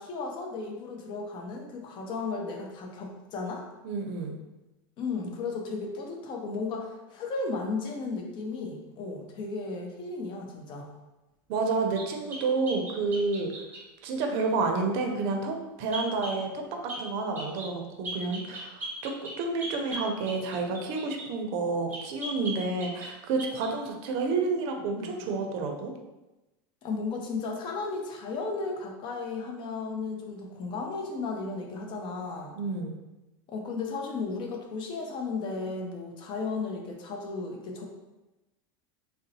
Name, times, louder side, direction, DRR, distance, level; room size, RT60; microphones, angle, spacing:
voice 1, 0.0-3.6 5.0-10.9 26.8-32.6 33.5-37.9, left 4 dB, 40° left, 2 dB, 0.6 m, -34 dB
voice 2, 3.8-4.4 11.5-13.5 14.0-25.9 32.6-33.0, right 3 dB, 55° right, 3 dB, 0.5 m, -30 dB
sound 1, 12.0-13.9 15.9-16.4 16.9-17.1 17.4-17.7 18.0-21.3 21.9-23.1 23.4-23.7, right 1 dB, 15° right, 0.8 m, -38 dB
3.8 x 2.0 x 2.7 m, 1.0 s
supercardioid pair, 125°, 12 cm